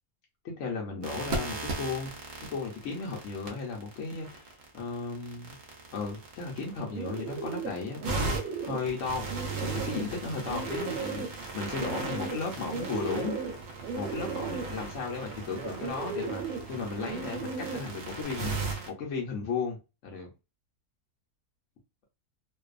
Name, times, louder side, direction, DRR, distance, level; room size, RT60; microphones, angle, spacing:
voice 1, 0.4-2.1 2.4-5.6 5.9-9.3 9.6-13.4 13.9-19.8 20.0-20.3, left 4 dB, 60° left, -1 dB, 0.9 m, -35 dB
sound 1, 1.0-18.9, right 3 dB, 55° right, 0.8 m, -38 dB
Bird, 6.6-18.2, right 5 dB, 75° right, 1.0 m, -37 dB
2.5 x 2.3 x 2.4 m, 0.28 s
omnidirectional pair, 1.6 m